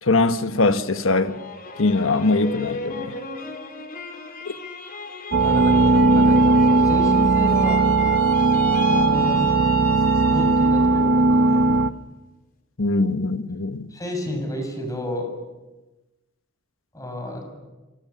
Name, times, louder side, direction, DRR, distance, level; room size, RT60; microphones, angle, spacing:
voice 1, 0.0-1.4 1.8-3.2 12.8-13.9, left 3 dB, 70° left, 1.4 m, -21 dB
sound 1, 1.1-10.9 11.3-12.0, left 3 dB, 45° left, 4.1 m, -34 dB
sound 2, 5.3-11.9, right 3 dB, 60° right, 0.8 m, -18 dB
voice 2, 5.4-7.8 8.9-9.4 10.2-11.7 13.9-15.3 16.9-17.5, left 1 dB, 15° left, 7.0 m, -31 dB
28.5 x 24.5 x 7.1 m
head